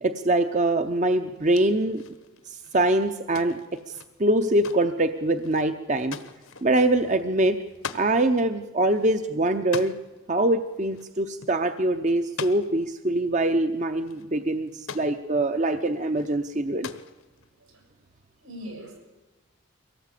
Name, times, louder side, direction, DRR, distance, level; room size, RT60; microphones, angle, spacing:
voice 1, 0.0-2.0 2.5-3.6 4.2-6.2 6.6-7.6 7.9-9.9 10.3-16.9, right 1 dB, 35° right, 8 dB, 0.7 m, -23 dB
sound 1, 1.4-8.1 8.4-8.5 8.8-10.2 10.9-11.2 11.4-11.6 12.2-12.9 13.7-13.8 14.0-15.2 15.9-16.3 16.6-17.5, left 5 dB, 75° left, 1.3 m, -41 dB
voice 2, 17.6-17.9 18.4-19.0, equal, 80° right, 3 dB, 7.3 m, -41 dB
23.5 x 18.0 x 8.4 m, 1.2 s
head